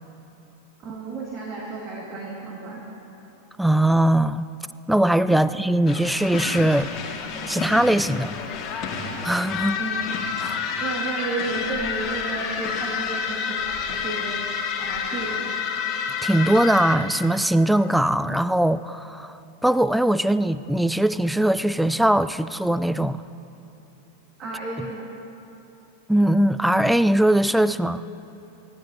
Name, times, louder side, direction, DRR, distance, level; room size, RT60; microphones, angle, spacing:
voice 1, 0.8-2.8 5.3-5.5 9.8-10.2 10.8-15.5 24.4-25.1, right 3 dB, 30° right, -2 dB, 2.3 m, -33 dB
voice 2, 3.6-4.5 4.9-6.9 7.5-8.3 9.2-9.8 10.4-10.6 16.2-19.4 19.6-23.2 26.1-28.0, right 1 dB, ahead, 15 dB, 0.4 m, -20 dB
sound 1, 5.9-17.0, left 6 dB, 30° left, 2.3 m, -29 dB
30.0 x 15.5 x 3.0 m, 3.0 s
figure-of-eight pair, 90°, 0 cm